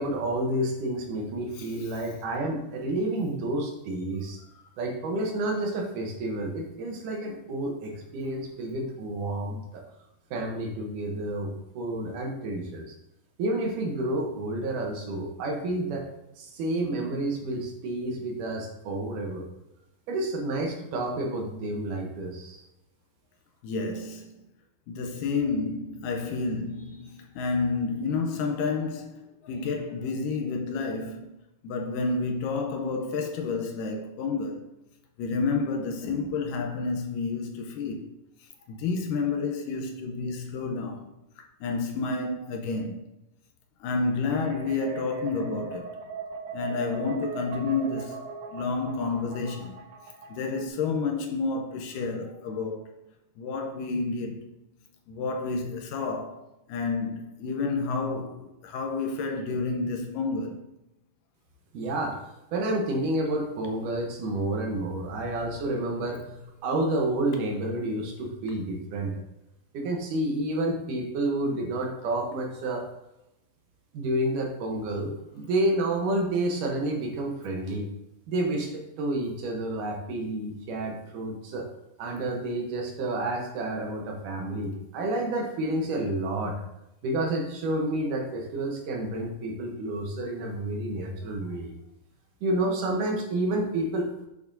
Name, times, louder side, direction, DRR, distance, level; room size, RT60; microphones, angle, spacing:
voice 1, 0.0-4.4 4.8-9.8 10.3-11.5 11.8-12.8 13.4-16.1 16.4-19.5 20.1-22.6 61.7-62.2 62.5-66.2 66.6-69.1 69.7-72.9 73.9-77.9 78.3-78.7 79.0-81.7 82.0-86.5 87.0-91.7 92.4-94.1, right 1 dB, 70° right, 2.4 m, -29 dB
voice 2, 1.5-2.0 23.6-24.3 24.9-29.1 29.4-31.3 31.6-34.6 35.2-38.1 38.7-41.1 41.6-43.0 43.8-46.0 46.5-48.2 48.5-49.8 50.3-52.9 53.4-54.5 55.1-60.6 66.2-66.5, left 4 dB, 75° left, 2.2 m, -30 dB
sound 1, 44.3-50.7, right 5 dB, 90° right, 2.5 m, -40 dB
8.3 x 6.8 x 2.7 m
omnidirectional pair, 4.0 m